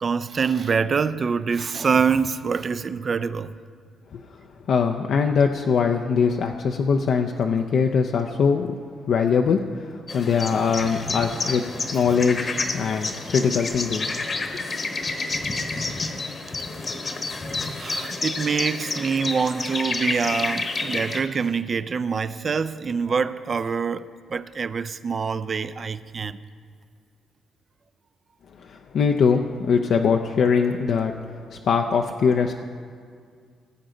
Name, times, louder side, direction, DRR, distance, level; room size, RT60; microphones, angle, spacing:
voice 1, 0.0-3.5 17.8-26.4, right 5 dB, 40° right, 0.4 m, -25 dB
voice 2, 4.7-8.7 9.1-11.6 11.9-14.1 14.5-14.6 28.6-31.1 31.5-32.5, left 6 dB, 65° left, 0.5 m, -22 dB
sound 1, 10.1-21.2, left 3 dB, 35° left, 1.0 m, -29 dB
17.5 x 7.6 x 3.9 m
cardioid pair, 90°, 0 cm